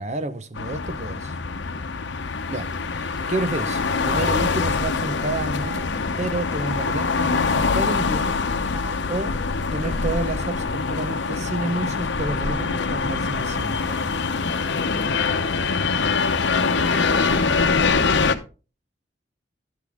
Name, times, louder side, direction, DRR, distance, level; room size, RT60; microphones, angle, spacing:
voice 1, 0.0-1.3 2.5-5.8 6.2-8.4 9.1-9.4 9.7-14.0, right 2 dB, 40° right, 0.8 m, -30 dB
sound 1, 0.6-18.4, left 4 dB, 80° left, 0.9 m, -24 dB
Telephone, 2.7-2.9 3.2-3.3 4.2-4.4 4.6-4.7 5.5-5.8 6.6-6.9 7.7-8.0 8.6-8.9 9.8-9.9 10.1-10.8, right 2 dB, 5° right, 0.7 m, -40 dB
11.5 x 8.3 x 3.6 m
head